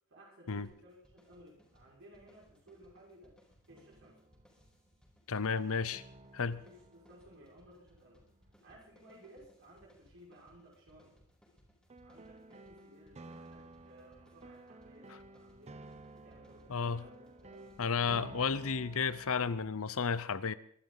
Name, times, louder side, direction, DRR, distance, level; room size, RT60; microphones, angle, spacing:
voice 1, 0.1-3.4 3.7-4.3 6.5-8.3 8.6-11.2 12.0-15.8 16.1-17.8, right 1 dB, 60° right, -4 dB, 5.8 m, -58 dB
sound 1, 0.6-18.1, equal, 5° left, 5.0 m, -66 dB
sound 2, 1.6-1.7 3.7-4.7 5.9-9.2 11.9-19.8, right 2 dB, 30° right, 0.7 m, -54 dB
voice 2, 5.3-6.0 6.3-6.6 16.7-17.0 17.8-20.5, left 5 dB, 70° left, 16 dB, 0.8 m, -32 dB
23.5 x 12.5 x 4.0 m, 0.62 s
head